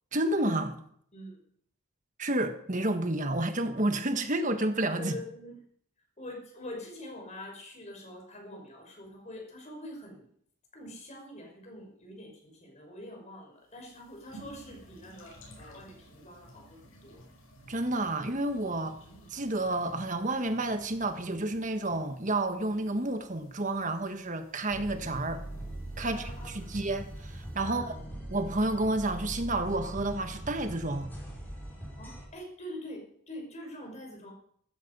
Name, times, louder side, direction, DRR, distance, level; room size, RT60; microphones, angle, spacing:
voice 1, 0.1-0.8 2.2-5.1 17.7-19.0 19.3-25.4 26.0-27.9 28.3-31.1, right 2 dB, 35° right, 7 dB, 1.5 m, -30 dB
voice 2, 4.9-5.6 6.2-10.3 10.7-17.2 26.0-26.7 27.6-28.0 32.0-34.3, left 1 dB, 35° left, 1 dB, 5.8 m, -45 dB
sound 1, 13.7-28.0, right 1 dB, 75° left, 6.9 m, -55 dB
sound 2, 24.7-32.3, right 1 dB, 10° left, 5.0 m, -41 dB
15.0 x 14.0 x 5.5 m, 0.65 s
head